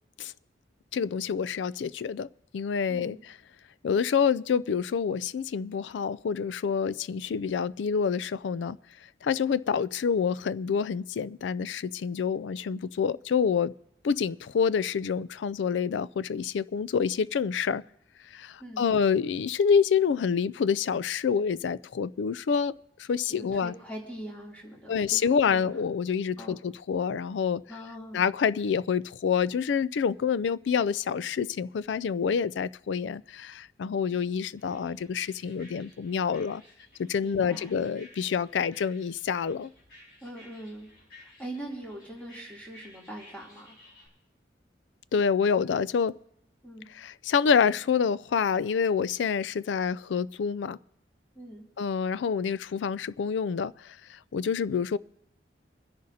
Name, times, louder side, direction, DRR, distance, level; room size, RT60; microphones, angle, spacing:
voice 1, 0.9-2.3 2.5-3.2 3.8-8.8 9.2-13.7 14.0-17.8 18.3-22.7 23.0-23.7 24.9-27.6 28.1-36.6 37.0-39.7 45.1-46.2 46.9-50.8 51.8-55.0, left 6 dB, 90° left, 0.4 m, -27 dB
voice 2, 2.9-3.2 18.6-18.8 23.3-25.7 26.4-26.6 27.7-28.2 37.2-37.6 40.2-40.9 41.2-43.8 46.6-46.9 51.3-51.6, right 1 dB, 10° left, 2.9 m, -42 dB
sound 1, 34.6-44.1, left 1 dB, 60° left, 5.0 m, -55 dB
26.5 x 10.5 x 2.8 m
head